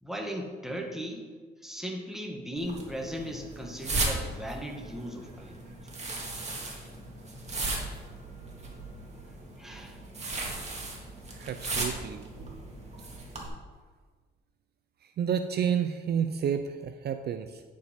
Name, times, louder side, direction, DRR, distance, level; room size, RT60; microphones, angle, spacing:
voice 1, 0.0-1.3 1.6-5.6 6.7-6.8 9.6-10.0, equal, ahead, 0 dB, 1.5 m, -37 dB
sound 1, 2.6-13.5, right 2 dB, 35° right, 2.0 m, -36 dB
voice 2, 11.3-12.3 15.0-17.6, right 8 dB, 55° right, 9 dB, 0.5 m, -30 dB
9.1 x 5.3 x 5.1 m, 1.5 s
cardioid pair, 90°, 20 cm